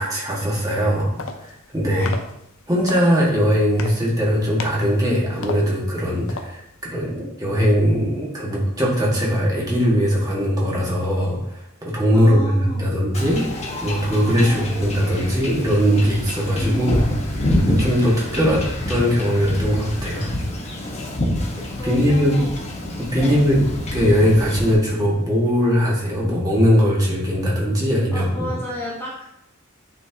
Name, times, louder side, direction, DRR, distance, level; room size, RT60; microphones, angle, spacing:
voice 1, 0.0-2.1 2.7-13.4 13.8-17.1 17.6-20.3 21.8-22.4 23.1-23.6 23.9-28.5, equal, 15° right, -5 dB, 1.9 m, -20 dB
sound 1, 0.8-6.9, left 4 dB, 70° left, 0.7 m, -37 dB
voice 2, 12.1-12.8 14.5-14.7 16.6-17.2 21.7-22.7 23.2-23.4 28.1-29.2, left 1 dB, 10° left, -6 dB, 1.1 m, -32 dB
Wind / Ocean / Boat Water vehicle, 13.1-24.7, left 1 dB, 30° left, 1.4 m, -27 dB
9.5 x 4.4 x 2.9 m, 0.80 s
head